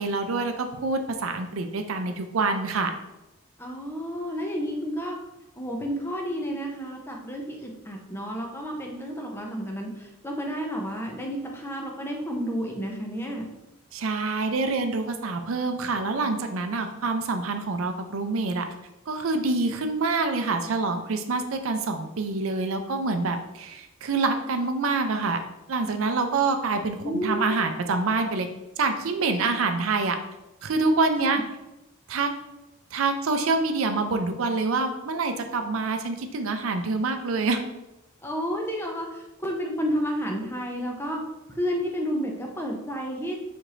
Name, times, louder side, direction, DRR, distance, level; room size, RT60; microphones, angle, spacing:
voice 1, 0.0-2.9 13.9-18.7 19.1-25.4 25.7-28.5 28.8-30.2 30.6-31.4 32.1-32.3 32.9-37.6, right 3 dB, 70° right, 7 dB, 0.5 m, -26 dB
voice 2, 3.6-5.2 5.6-13.4 27.0-27.5 31.2-31.4 38.2-41.2 41.5-43.4, equal, 10° left, 0 dB, 0.6 m, -31 dB
4.3 x 2.6 x 4.8 m, 0.94 s
head